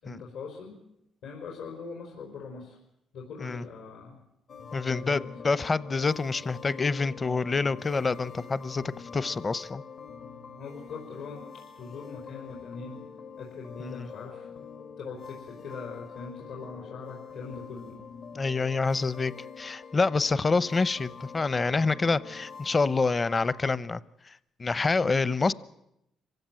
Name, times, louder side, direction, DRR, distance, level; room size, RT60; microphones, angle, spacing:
voice 1, 0.0-0.8 1.2-2.8 3.1-4.2 4.8-5.3 10.5-11.4 11.7-13.0 13.4-14.6 15.0-18.0 25.0-25.2, left 5 dB, 85° left, 0 dB, 4.7 m, -41 dB
sound 1, 4.5-23.7, left 6 dB, 60° left, 1.3 m, -45 dB
voice 2, 4.7-9.8 13.8-14.0 18.3-24.0 24.3-25.5, left 4 dB, 30° left, 18 dB, 0.8 m, -27 dB
25.5 x 16.0 x 9.1 m, 0.84 s
cardioid pair, 90°, 0 cm